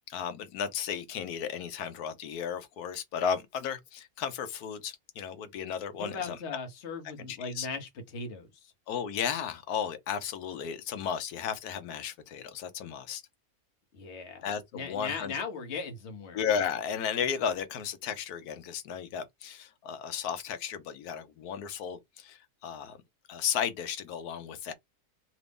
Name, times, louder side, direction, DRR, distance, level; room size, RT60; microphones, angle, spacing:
voice 1, 0.1-6.4 7.3-7.7 8.9-13.2 14.4-15.3 16.3-23.0 23.3-24.7, left 7 dB, 85° left, 1.2 m, -34 dB
voice 2, 6.0-8.7 13.9-14.5 14.7-16.4, left 4 dB, 50° left, 1.2 m, -38 dB
2.9 x 2.7 x 3.4 m
omnidirectional pair, 1.6 m